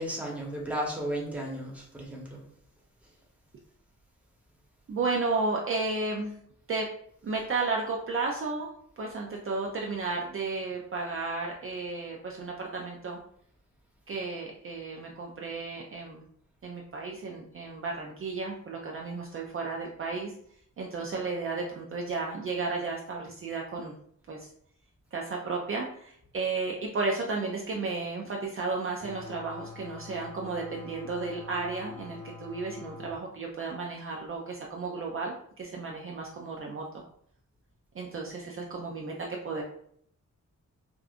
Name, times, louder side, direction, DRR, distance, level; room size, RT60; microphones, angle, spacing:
voice 1, 0.0-2.4 3.0-3.1, right 1 dB, 5° right, -3 dB, 1.0 m, -34 dB
voice 2, 4.9-6.4 6.7-6.9 7.2-13.2 14.1-16.2 16.6-20.3 20.8-23.9 24.3-24.5 25.1-37.0 37.9-39.1 39.4-39.6, right 3 dB, 45° right, -1 dB, 0.4 m, -33 dB
sound 1, 29.0-33.1, left 4 dB, 75° left, 1.4 m, -44 dB
4.8 x 2.3 x 2.4 m, 0.67 s
wide cardioid pair, 120°, 31 cm